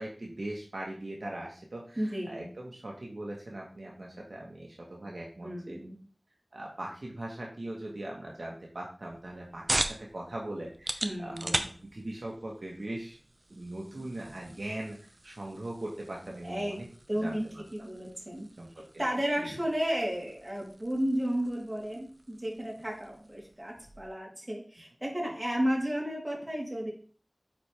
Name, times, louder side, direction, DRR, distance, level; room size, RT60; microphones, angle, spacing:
voice 1, 0.0-5.8 6.5-11.5 11.8-13.2 13.5-16.9 17.1-17.6 18.6-18.9 19.4-19.5, right 1 dB, 85° right, -1 dB, 1.3 m, -40 dB
voice 2, 2.0-2.5 5.4-6.0 11.0-11.6 16.4-16.8 17.1-17.4 17.7-18.5 19.0-26.9, equal, 30° right, -3 dB, 3.0 m, -33 dB
sound 1, 9.0-24.2, right 1 dB, 60° right, 0.6 m, -40 dB
8.6 x 4.4 x 3.4 m, 0.42 s
wide cardioid pair, 45°, 0 cm